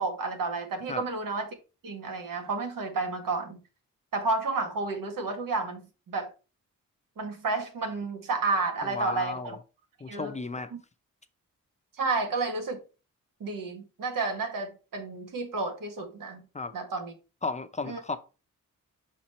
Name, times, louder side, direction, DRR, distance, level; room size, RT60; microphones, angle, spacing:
voice 1, 0.0-1.5 1.8-3.6 4.1-6.3 7.2-9.6 10.1-10.3 12.0-12.8 13.4-16.4 16.7-17.1 17.8-18.0, right 3 dB, 85° right, 1.6 m, -31 dB
voice 2, 8.8-9.6 10.0-10.7 16.5-16.7 17.4-18.2, left 3 dB, 20° left, 0.5 m, -34 dB
5.9 x 4.4 x 4.2 m
wide cardioid pair, 130°, 33 cm